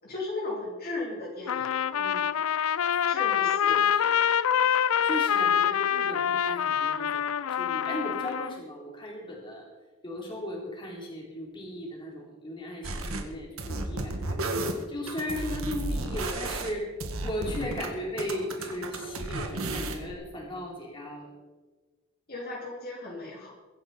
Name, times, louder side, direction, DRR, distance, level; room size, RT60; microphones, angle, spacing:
voice 1, 0.0-1.7 3.1-3.8 22.3-23.5, left 2 dB, 45° left, -3 dB, 3.5 m, -36 dB
Trumpet, 1.5-8.6, left 9 dB, 85° left, 0.5 m, -26 dB
voice 2, 1.9-2.3 2.9-3.0 3.7-4.2 5.0-9.6 10.0-14.5 14.9-16.9 17.2-21.3, left 1 dB, 25° left, -2 dB, 3.9 m, -36 dB
sound 1, 12.8-13.2 13.6-17.9 18.2-20.1, right 2 dB, 85° right, 1.9 m, -33 dB
23.5 x 10.0 x 4.4 m, 1.3 s
head